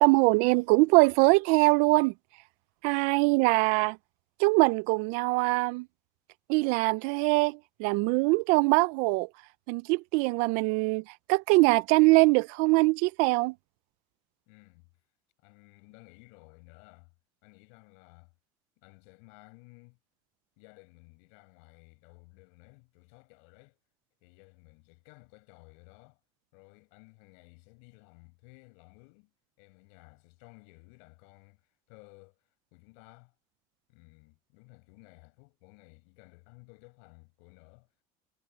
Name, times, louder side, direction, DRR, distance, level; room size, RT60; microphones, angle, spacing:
voice 1, 0.0-2.1 2.8-4.0 4.4-5.9 6.5-9.3 9.7-11.0 11.3-13.5, right 26 dB, 75° right, 0.6 m, -23 dB
voice 2, 14.5-14.9 15.4-17.1 17.4-18.3 18.8-20.0 20.6-23.8 24.2-26.2 26.5-29.3 29.6-31.6 31.9-32.4 32.7-33.3 33.9-37.9, left 34 dB, 80° left, 6.3 m, -56 dB
supercardioid pair, 110°, 13 cm